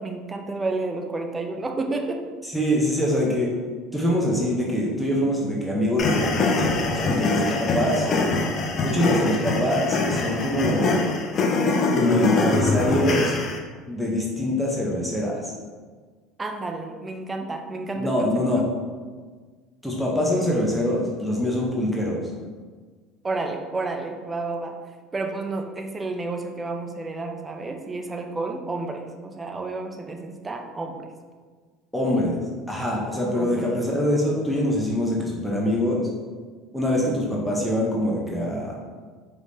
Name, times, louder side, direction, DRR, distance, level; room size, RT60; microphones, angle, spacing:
voice 1, 0.0-2.2 7.8-8.3 16.4-18.7 23.2-24.8 25.1-31.1 33.3-33.7, right 3 dB, 20° right, 4 dB, 0.5 m, -31 dB
voice 2, 2.4-3.5 3.9-8.1 8.8-11.0 11.9-13.3 13.9-15.5 17.9-18.6 19.8-22.2 31.9-32.4 32.7-36.1 36.7-38.8, left 1 dB, 5° left, -3 dB, 0.8 m, -24 dB
sound 1, 6.0-13.6, left 3 dB, 45° left, 0.6 m, -23 dB
4.8 x 3.3 x 2.7 m, 1.5 s
supercardioid pair, 90°, 0 cm